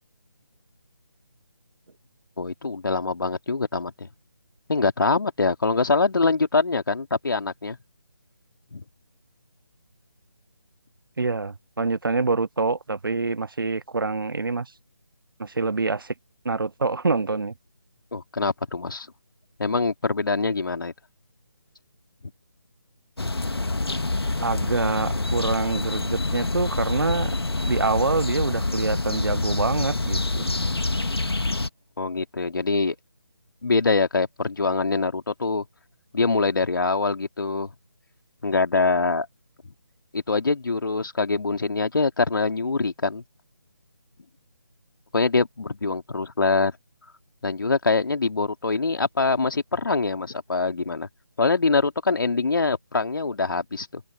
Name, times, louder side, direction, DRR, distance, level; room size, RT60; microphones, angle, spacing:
voice 1, 2.4-4.1 4.7-7.8 8.7-8.8 18.1-19.1 19.6-20.9 32.0-33.0 33.6-35.6 36.1-37.7 38.4-39.3 40.1-43.2 45.1-46.7 47.4-51.1 51.4-54.0, left 3 dB, 55° left, 2.9 m, -24 dB
voice 2, 11.2-14.7 15.4-16.1 16.4-17.5 24.4-27.3 27.7-30.5, right 3 dB, 60° right, 1.0 m, -26 dB
sound 1, 23.2-31.7, left 2 dB, 70° left, 2.1 m, -26 dB
figure-of-eight pair, 155°, 13 cm